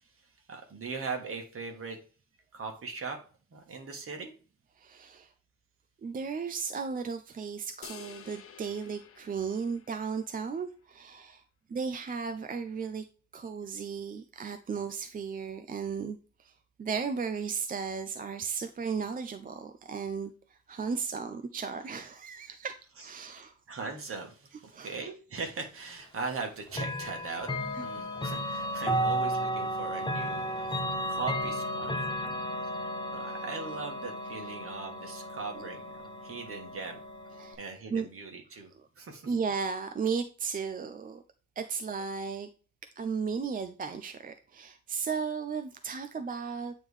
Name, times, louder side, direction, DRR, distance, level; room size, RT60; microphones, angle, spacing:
voice 1, 0.5-2.0 2.5-3.2 3.5-4.3 23.0-31.9 32.6-32.7 33.1-37.0 37.6-38.7 39.0-39.3, right 4 dB, 45° right, 1.6 m, -40 dB
voice 2, 4.8-5.3 6.0-11.4 11.7-13.0 13.3-16.5 16.8-22.7 23.0-23.5 24.7-25.0 27.7-27.9 28.9-29.0 30.8-30.9 37.4-37.6 37.9-38.1 39.3-41.2 41.6-42.5 43.0-46.7, right 5 dB, 30° right, 0.4 m, -35 dB
sound 1, 7.8-10.4, left 7 dB, 45° left, 0.8 m, -50 dB
Chime / Clock, 26.7-37.6, equal, 15° left, 0.7 m, -34 dB
8.9 x 3.2 x 3.5 m
wide cardioid pair, 165°, 31 cm